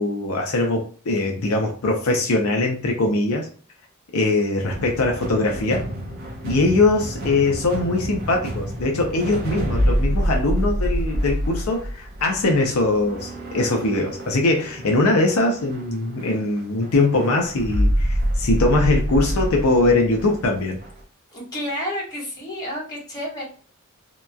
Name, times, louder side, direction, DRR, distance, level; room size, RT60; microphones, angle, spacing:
voice 1, 0.0-3.5 4.1-5.8 6.4-20.8, left 2 dB, 80° left, 2 dB, 0.5 m, -21 dB
sound 1, 4.6-21.0, equal, 50° right, 0.6 m, -27 dB
voice 2, 21.3-23.4, equal, 20° left, -5 dB, 1.4 m, -30 dB
2.8 x 2.3 x 2.2 m, 0.42 s
head